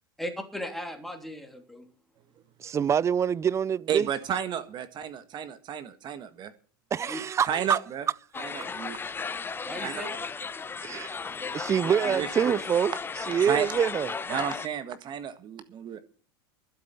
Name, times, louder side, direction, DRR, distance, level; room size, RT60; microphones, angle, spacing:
voice 1, 0.2-1.8 7.0-7.2 9.6-10.1, left 1 dB, ahead, 3.2 m, -37 dB
voice 2, 2.6-4.1 6.9-7.8 10.8-11.2 11.5-12.9 13.3-14.1, right 8 dB, 25° right, 0.5 m, -25 dB
voice 3, 3.9-6.5 7.5-8.0 8.4-8.9 9.8-10.3 11.8-12.6 13.4-13.7 14.3-16.0, right 9 dB, 40° right, 1.6 m, -32 dB
sound 1, 8.3-14.7, left 5 dB, 20° left, 1.0 m, -35 dB
12.0 x 7.7 x 9.3 m
hypercardioid pair, 100°, 12 cm